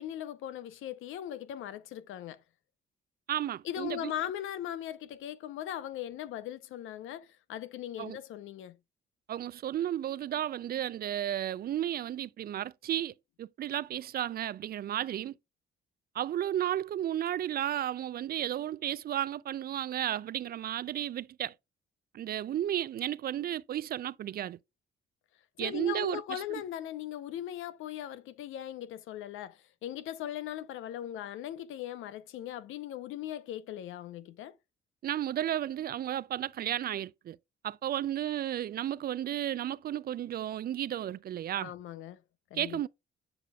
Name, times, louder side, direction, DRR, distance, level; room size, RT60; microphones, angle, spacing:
voice 1, 0.0-2.4 3.6-8.8 25.6-34.5 41.6-42.2 42.5-42.9, left 11 dB, 85° left, 0.8 m, -39 dB
voice 2, 3.3-4.1 8.0-8.2 9.3-15.3 16.1-21.5 22.1-24.6 25.6-26.6 35.0-37.4 37.6-41.7 42.5-42.9, right 11 dB, 50° right, 0.4 m, -33 dB
9.5 x 5.0 x 2.3 m
cardioid pair, 90°, 20 cm